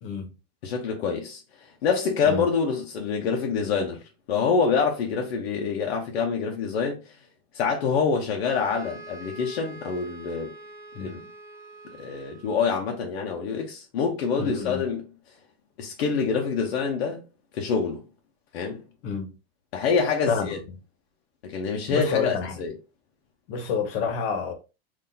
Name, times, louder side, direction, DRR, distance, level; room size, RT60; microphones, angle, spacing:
voice 1, 0.0-0.3 2.2-2.5 10.9-11.1 14.4-14.8 19.0-19.3 20.3-20.5 21.9-22.6 23.5-24.5, left 5 dB, 65° left, 1.1 m, -28 dB
voice 2, 0.6-4.0 4.3-7.0 7.5-10.5 11.0-11.2 12.0-15.1 15.8-17.2 17.5-18.0 18.5-18.8 19.7-20.6 21.4-22.7, left 5 dB, 85° left, 0.8 m, -26 dB
sound 1, 8.4-12.8, right 2 dB, 10° right, 0.7 m, -45 dB
3.9 x 2.7 x 2.7 m
supercardioid pair, 140°, 31 cm